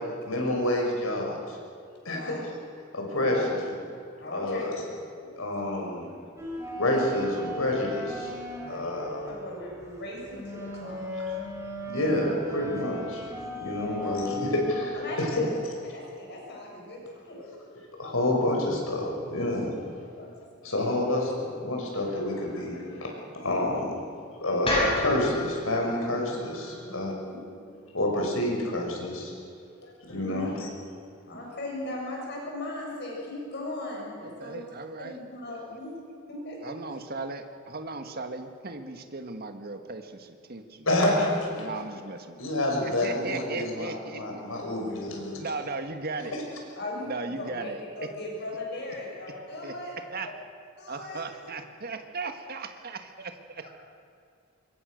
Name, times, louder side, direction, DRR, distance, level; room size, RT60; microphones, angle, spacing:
voice 1, 0.3-1.6 2.0-2.3 2.9-3.4 4.3-4.8 5.4-6.1 6.8-8.3 8.7-9.3 11.9-13.2 13.6-15.5 17.4-17.5 18.0-19.9 20.6-23.9 24.4-27.1 27.9-29.3 30.1-30.7 40.9-41.7 42.4-45.4 46.3-46.4, left 1 dB, 85° left, 0 dB, 6.3 m, -28 dB
voice 2, 2.1-2.4 3.1-3.5 4.2-4.7 9.3-11.3 14.0-14.3 14.9-15.5 15.9-17.5 20.2-20.3 20.6-20.7 26.8-27.4 30.0-30.5 31.3-34.6 35.0-35.9 36.3-36.7 44.9-45.1 46.8-49.9 50.8-51.5, left 1 dB, 55° left, -2 dB, 7.0 m, -38 dB
sound 1, 6.4-14.8, left 1 dB, 15° right, 4.3 m, -38 dB
sound 2, 24.6-28.8, left 1 dB, 30° left, 7.5 m, -33 dB
voice 3, 34.4-35.2 36.6-40.9 41.6-42.4 42.8-44.4 45.3-46.4 47.0-47.8 49.6-49.7 50.1-50.3 50.9-53.8, right 3 dB, 50° right, 6 dB, 1.8 m, -37 dB
26.0 x 22.0 x 6.6 m, 2.4 s
head